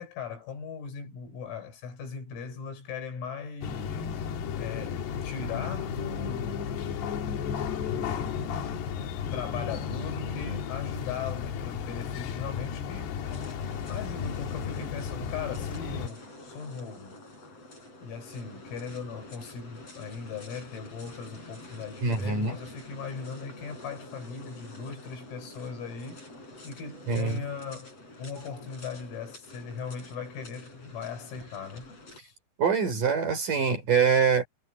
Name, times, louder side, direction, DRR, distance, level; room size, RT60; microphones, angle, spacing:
voice 1, 0.0-4.0 4.6-7.0 7.8-8.8 9.3-13.2 13.9-17.2 18.0-26.3 26.7-32.4, left 5 dB, 90° left, 8.6 m, -39 dB
sound 1, 3.6-16.1, left 7 dB, 65° left, 3.4 m, -33 dB
sound 2, 13.2-32.2, left 2 dB, 30° left, 8.5 m, -48 dB
voice 2, 22.0-22.6 27.1-27.4 32.6-34.5, right 6 dB, 40° right, 6.2 m, -24 dB
omnidirectional pair, 5.9 m